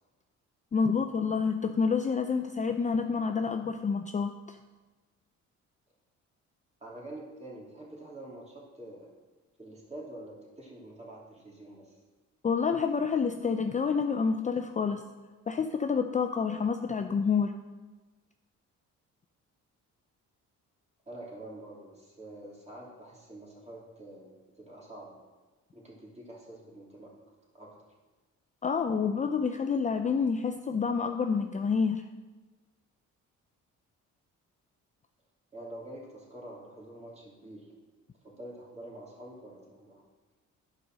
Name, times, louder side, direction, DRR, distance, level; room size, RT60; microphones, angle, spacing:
voice 1, 0.7-4.6 12.4-15.0 15.5-17.5 28.6-32.0, left 5 dB, 25° left, 6 dB, 0.5 m, -28 dB
voice 2, 6.8-9.1 9.6-12.0 21.1-25.2 25.7-27.1 27.5-27.8 35.5-37.7 38.2-40.0, right 1 dB, 20° right, -4 dB, 3.1 m, -46 dB
9.9 x 5.3 x 6.2 m, 1.3 s
cardioid pair, 90°, 30 cm